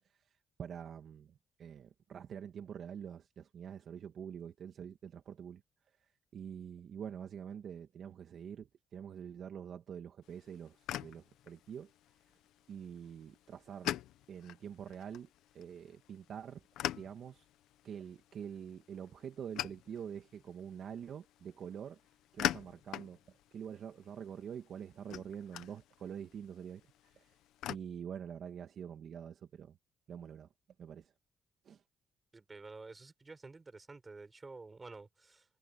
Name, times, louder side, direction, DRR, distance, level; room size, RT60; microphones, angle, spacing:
voice 1, 0.6-5.6 6.3-11.9 12.7-14.0 14.3-15.3 15.5-17.5 17.8-22.0 22.3-23.2 23.5-26.8 27.2-27.3 27.7-29.8 30.1-30.5 30.8-31.1 31.7-31.8, right 8 dB, 60° right, 1.9 m, -46 dB
sound 1, 10.2-27.8, left 13 dB, 90° left, 1.0 m, -44 dB
voice 2, 32.3-35.5, right 3 dB, 25° right, 6.3 m, -50 dB
cardioid pair, 90°, 0 cm